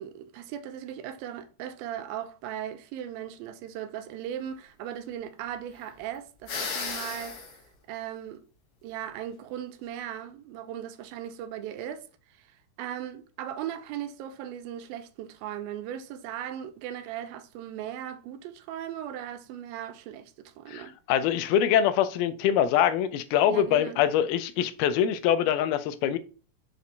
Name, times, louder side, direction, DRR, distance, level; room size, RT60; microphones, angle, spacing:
voice 1, 0.0-7.4 7.9-8.4 8.8-12.1 12.4-21.0 23.5-24.0, right 10 dB, 85° right, 2.4 m, -38 dB
sound 1, 6.5-7.6, left 5 dB, 60° left, 1.6 m, -34 dB
voice 2, 20.7-26.2, left 10 dB, 90° left, 2.6 m, -24 dB
6.2 x 4.4 x 3.9 m
omnidirectional pair, 4.3 m